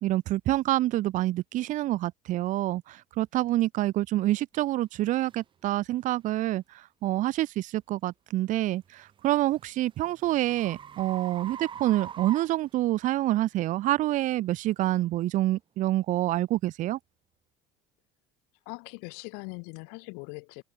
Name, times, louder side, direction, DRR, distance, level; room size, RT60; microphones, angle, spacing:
voice 1, 0.0-17.0, right 15 dB, 50° right, 1.2 m, -27 dB
sound 1, 4.5-4.6 5.2-5.4 6.0-6.2 8.9-13.3, right 8 dB, 30° right, 1.5 m, -43 dB
voice 2, 18.7-20.6, left 36 dB, 80° left, 2.1 m, -41 dB
cardioid pair, 140°, 17 cm